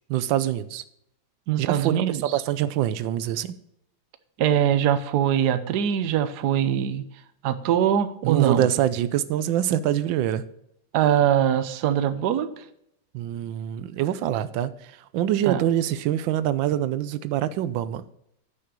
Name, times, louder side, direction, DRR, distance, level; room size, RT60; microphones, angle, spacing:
voice 1, 0.1-0.8 1.6-3.5 8.2-10.4 13.1-18.0, right 11 dB, 90° right, 14 dB, 1.4 m, -25 dB
voice 2, 1.5-2.3 4.4-7.0 7.4-8.7 10.9-12.6 15.4-15.6, right 10 dB, 65° right, 12 dB, 1.3 m, -22 dB
9.6 x 5.9 x 6.8 m, 0.75 s
omnidirectional pair, 2.0 m